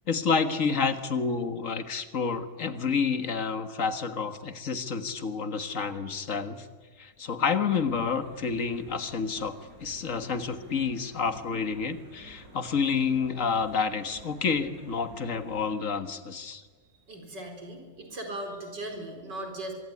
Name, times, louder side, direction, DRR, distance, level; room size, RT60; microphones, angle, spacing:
voice 1, 0.1-6.7 7.0-16.6, left 5 dB, 50° left, 9 dB, 1.9 m, -29 dB
sound 1, 7.7-15.8, right 1 dB, 55° right, 8.5 m, -51 dB
voice 2, 17.1-19.7, right 1 dB, 90° right, 4 dB, 4.9 m, -38 dB
24.0 x 23.5 x 9.8 m, 1.5 s
omnidirectional pair, 1.8 m